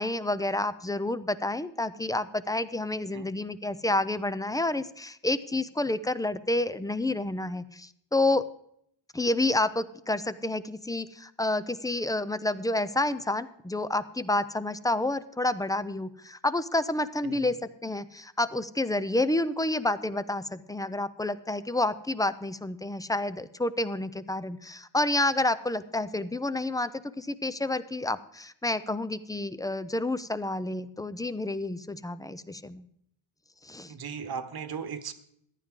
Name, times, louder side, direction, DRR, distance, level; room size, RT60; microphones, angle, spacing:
voice 1, 0.0-8.4 9.1-17.6 17.8-26.9 27.2-32.9 33.6-33.9, left 2 dB, 10° left, 14 dB, 0.3 m, -29 dB
voice 2, 17.2-17.6 33.9-35.1, right 6 dB, 50° right, 11 dB, 1.1 m, -37 dB
14.5 x 11.0 x 3.7 m, 0.71 s
wide cardioid pair, 145°, 46 cm